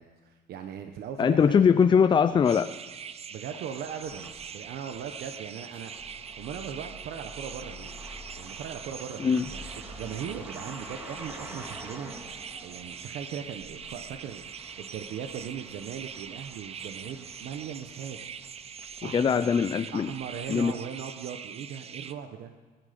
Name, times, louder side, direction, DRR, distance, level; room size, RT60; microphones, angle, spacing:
voice 1, 0.0-1.6 3.3-5.9 6.4-8.0 8.4-12.1 12.6-18.2 19.0-19.5 19.9-22.5, right 8 dB, 70° right, 6 dB, 1.1 m, -39 dB
voice 2, 1.2-2.7 9.2-9.5 19.0-20.1 20.5-20.7, left 6 dB, 30° left, 12 dB, 0.5 m, -22 dB
sound 1, 1.6-2.3 3.0-20.8, equal, 10° right, 2.3 m, -48 dB
sound 2, 2.4-22.1, right 7 dB, 35° right, 0.7 m, -43 dB
21.0 x 10.5 x 5.2 m, 1.4 s
cardioid pair, 110°, 17 cm